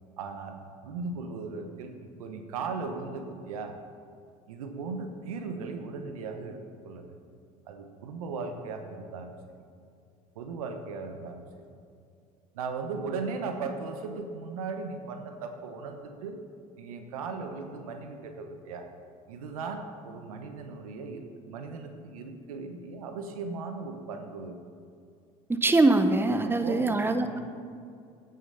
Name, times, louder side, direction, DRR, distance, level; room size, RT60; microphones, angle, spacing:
voice 1, 0.2-3.7 4.5-7.2 7.7-9.3 10.3-11.4 12.5-16.4 16.8-18.9 19.3-24.6 26.4-27.4, right 4 dB, 85° right, 6 dB, 1.1 m, -37 dB
voice 2, 25.5-27.4, right 2 dB, 10° right, 8 dB, 0.9 m, -23 dB
9.6 x 9.5 x 5.6 m, 2.4 s
hypercardioid pair, 70°, 18 cm